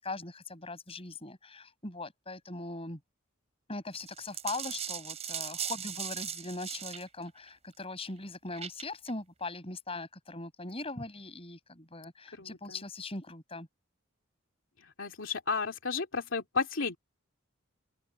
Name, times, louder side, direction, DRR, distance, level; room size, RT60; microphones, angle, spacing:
voice 1, 0.0-3.0 3.7-13.7, left 2 dB, 30° left, 7.9 m, -40 dB
sound 1, 3.9-7.1 8.5-9.1, right 9 dB, 30° right, 4.6 m, -38 dB
voice 2, 12.4-12.8 15.0-17.0, left 4 dB, 65° left, 2.9 m, -33 dB
open air
head